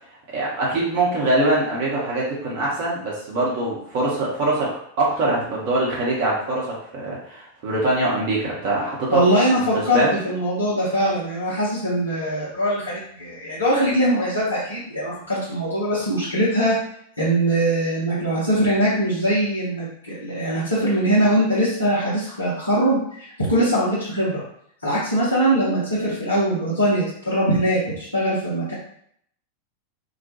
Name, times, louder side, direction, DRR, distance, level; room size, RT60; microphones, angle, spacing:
voice 1, 0.3-9.2 9.7-10.2, right 2 dB, 45° right, -5 dB, 0.7 m, -23 dB
voice 2, 9.1-16.8 17.2-24.4 24.8-28.7, right 1 dB, 80° left, -9 dB, 0.7 m, -22 dB
2.3 x 2.1 x 2.8 m, 0.67 s
figure-of-eight pair, 90°, 0 cm